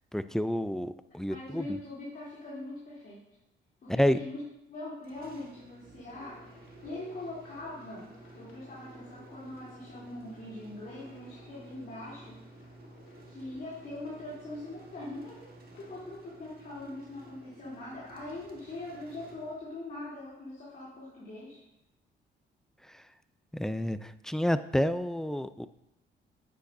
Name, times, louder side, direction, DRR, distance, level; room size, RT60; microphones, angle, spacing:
voice 1, 0.1-1.7 3.9-4.2 23.5-25.7, equal, ahead, 12 dB, 0.4 m, -29 dB
voice 2, 1.2-3.2 3.8-4.4 4.7-12.4 13.3-15.5 15.8-21.6, left 2 dB, 45° left, -8 dB, 3.1 m, -42 dB
sound 1, 5.0-20.0, right 2 dB, 50° right, 1.6 m, -53 dB
sound 2, 6.1-16.0, left 3 dB, 85° left, 1.7 m, -58 dB
10.0 x 8.4 x 2.6 m, 0.84 s
cardioid pair, 90°, 20 cm